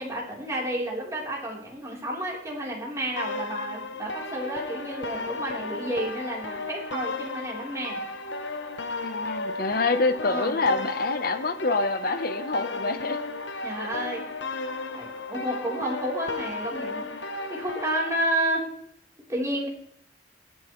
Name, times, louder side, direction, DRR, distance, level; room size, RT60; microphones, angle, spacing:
voice 1, 0.0-8.0 10.2-10.5 13.6-14.4 14.9-18.7 19.3-19.7, right 1 dB, 15° right, -4 dB, 3.7 m, -31 dB
sound 1, 3.2-18.2, left 2 dB, 75° left, 1.0 m, -34 dB
voice 2, 9.0-13.2 13.8-13.9, left 3 dB, 55° left, 10 dB, 1.0 m, -26 dB
22.5 x 8.4 x 3.2 m, 0.69 s
head